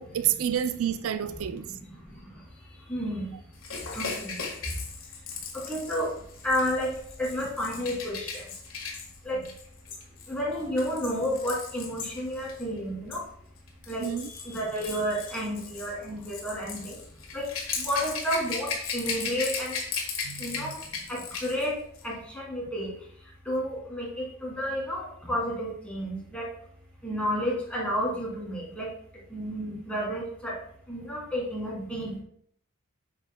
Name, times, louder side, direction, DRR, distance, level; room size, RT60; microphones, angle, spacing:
voice 1, 0.0-1.7 14.0-14.3 20.2-20.7, right 9 dB, 85° right, 0.4 m, -29 dB
voice 2, 1.6-1.9 2.9-3.3 3.9-4.4 5.5-6.1 6.4-6.9 7.2-8.5 9.2-9.5 10.3-13.2 13.9-17.0 17.3-17.4 17.8-19.8 20.4-20.8 21.1-21.8 22.0-22.9 23.5-26.5 27.0-28.9 29.3-30.6 30.9-32.2, equal, 5° left, 2.6 m, -31 dB
Rattle / Rattle (instrument), 3.6-12.6 13.6-21.7 22.0-22.1, left 5 dB, 75° left, 1.6 m, -37 dB
Metal Grate Floor Hit Pickaxe Hammer Thingy Great Hall, 8.9-9.1 9.9-10.1 11.0-11.2 12.0-12.2 13.1-13.3 14.2-14.3 15.3-15.4, left 4 dB, 60° left, 2.8 m, -42 dB
8.6 x 6.0 x 2.2 m
head